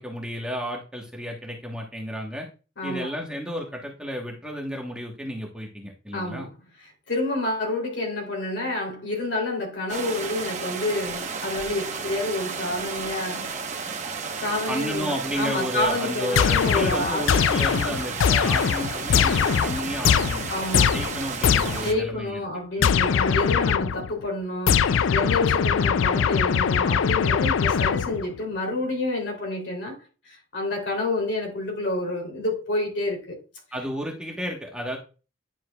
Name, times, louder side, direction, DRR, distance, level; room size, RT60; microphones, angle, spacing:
voice 1, 0.0-2.5 2.8-6.5 14.7-20.4 20.7-22.4 22.8-23.0 33.7-35.0, equal, 5° right, 1.2 m, -32 dB
voice 2, 2.8-3.1 6.1-6.5 7.1-13.5 14.4-17.5 20.5-21.0 21.7-33.4, left 2 dB, 60° left, 3.1 m, -29 dB
sound 1, 9.9-21.9, right 5 dB, 35° right, 1.0 m, -33 dB
sound 2, 16.3-22.0 22.8-24.1 24.7-28.3, left 7 dB, 80° left, 0.4 m, -22 dB
10.5 x 7.3 x 2.3 m
head